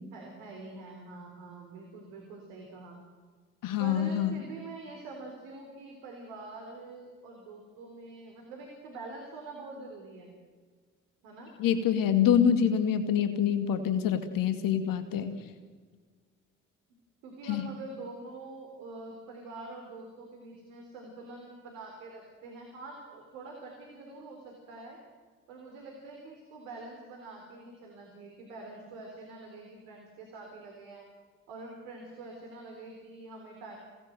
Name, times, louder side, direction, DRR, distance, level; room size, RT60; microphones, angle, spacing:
voice 1, 0.1-3.0 3.8-10.3 11.2-11.5 17.2-25.0 25.5-31.1 31.5-33.8, right 3 dB, 80° right, 1 dB, 3.9 m, -45 dB
voice 2, 3.6-4.4 11.6-15.4 17.5-17.7, left 8 dB, 65° left, 8 dB, 2.3 m, -26 dB
27.5 x 18.5 x 7.8 m, 1.5 s
hypercardioid pair, 45°, 36 cm